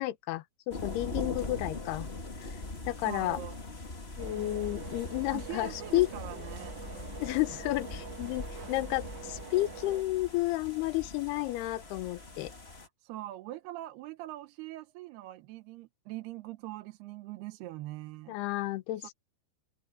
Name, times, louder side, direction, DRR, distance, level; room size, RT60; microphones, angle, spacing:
voice 1, 0.0-2.1 2.4-2.6 2.9-3.4 4.2-6.1 7.2-12.5 18.3-19.1, left 18 dB, 75° left, 2.9 m, -32 dB
sound 1, 0.7-12.9, left 2 dB, 35° left, 1.0 m, -42 dB
voice 2, 3.0-3.6 5.3-6.8 13.0-18.4 19.0-19.1, right 16 dB, 75° right, 2.9 m, -42 dB
sound 2, 4.2-10.0, right 8 dB, 55° right, 1.2 m, -46 dB
omnidirectional pair, 4.9 m